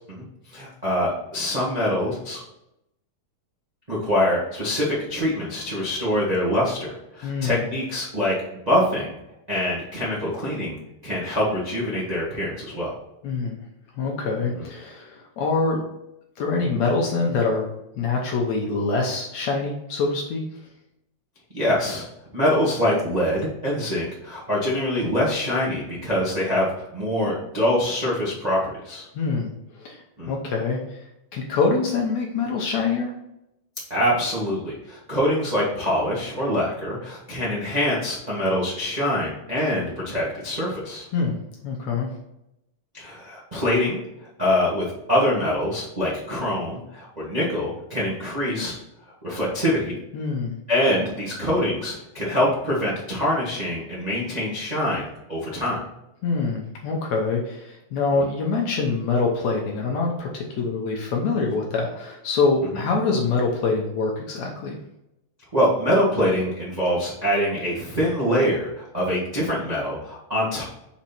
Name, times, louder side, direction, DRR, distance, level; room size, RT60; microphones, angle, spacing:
voice 1, 0.5-2.4 3.9-8.3 8.7-9.2 9.5-10.8 11.0-12.9 14.5-14.6 21.5-22.1 22.3-28.6 28.8-29.0 30.2-30.3 33.9-41.1 42.9-44.0 44.4-48.8 49.2-50.0 50.7-55.8 58.1-58.2 62.7-62.8 65.5-70.6, equal, 90° right, -7 dB, 0.3 m, -24 dB
voice 2, 7.2-7.7 13.2-13.6 14.0-15.8 16.4-17.7 18.0-20.4 29.2-29.5 29.8-31.1 31.3-33.1 41.1-41.3 41.6-42.1 50.1-50.5 56.2-64.8, left 4 dB, 70° left, 0 dB, 1.7 m, -25 dB
6.2 x 4.3 x 4.3 m, 0.85 s
omnidirectional pair, 4.0 m